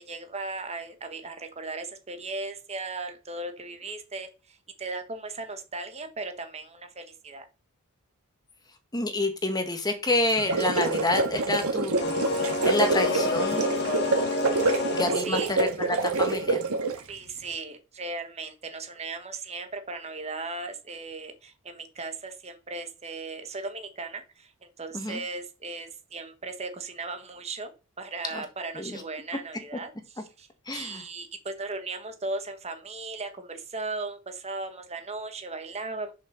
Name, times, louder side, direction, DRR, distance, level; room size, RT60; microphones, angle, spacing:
voice 1, 0.0-7.4 14.6-14.9 15.2-15.5 17.1-27.7 28.0-36.1, right 3 dB, 30° right, 7 dB, 1.3 m, -37 dB
voice 2, 8.9-12.2 12.6-13.6 15.0-16.6 24.9-25.2 28.3-28.4 28.7-29.0 30.7-31.0, left 2 dB, 20° left, 6 dB, 1.5 m, -28 dB
sound 1, 10.3-17.1, right 3 dB, 80° right, 1.6 m, -26 dB
sound 2, 12.0-15.5, left 3 dB, 50° left, 1.7 m, -29 dB
6.6 x 5.6 x 6.3 m, 0.32 s
head